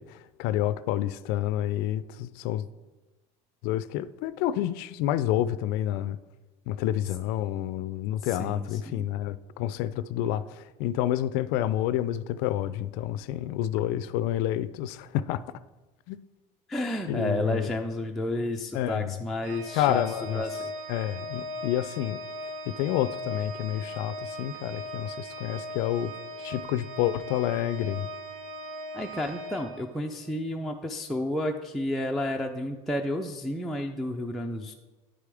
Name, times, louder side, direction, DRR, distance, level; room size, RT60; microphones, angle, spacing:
voice 1, 0.0-2.6 3.6-6.2 6.7-15.4 16.1-16.2 17.1-17.7 18.7-19.1 19.7-20.4 20.9-22.2 22.7-26.1 26.4-28.1, left 12 dB, 65° left, 0.4 m, -29 dB
voice 2, 8.2-9.1 16.7-20.7 28.9-34.7, left 1 dB, ahead, 0.4 m, -31 dB
Organ, 19.4-30.3, equal, 70° right, 1.1 m, -39 dB
9.8 x 4.9 x 3.4 m
supercardioid pair, 115°, 17 cm